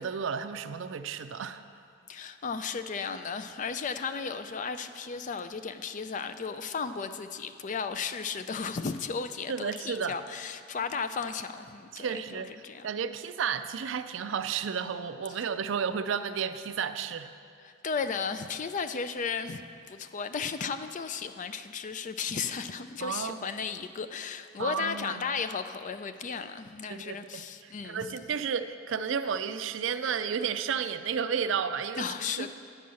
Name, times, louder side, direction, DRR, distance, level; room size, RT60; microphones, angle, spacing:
voice 1, 0.0-1.6 9.5-10.2 11.9-17.3 23.0-23.4 24.6-25.3 26.9-32.5, right 7 dB, 65° right, 11 dB, 0.4 m, -32 dB
voice 2, 2.1-12.9 17.6-19.6 19.9-28.2 32.0-32.5, left 5 dB, 40° left, 11 dB, 0.4 m, -35 dB
9.6 x 5.4 x 7.6 m, 2.3 s
head